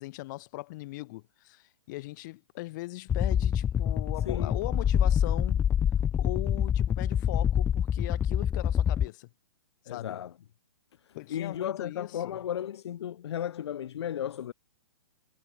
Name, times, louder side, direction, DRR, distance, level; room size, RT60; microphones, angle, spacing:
voice 1, 0.0-5.7 6.2-9.3 9.8-10.2 11.1-12.4, left 20 dB, 40° left, 4.0 m, -40 dB
sound 1, 3.1-9.1, left 9 dB, 15° left, 1.1 m, -26 dB
voice 2, 4.2-4.6 9.9-10.3 11.3-14.5, left 10 dB, 60° left, 3.4 m, -34 dB
hypercardioid pair, 145°, 15 cm